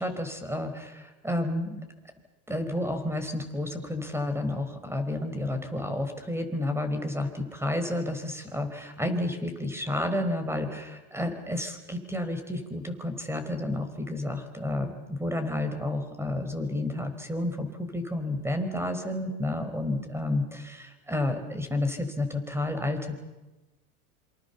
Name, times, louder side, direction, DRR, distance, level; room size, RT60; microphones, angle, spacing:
voice 1, 0.0-1.8 2.5-23.2, left 1 dB, 5° right, 8 dB, 4.8 m, -31 dB
27.0 x 25.5 x 7.1 m, 1.1 s
supercardioid pair, 105°, 43 cm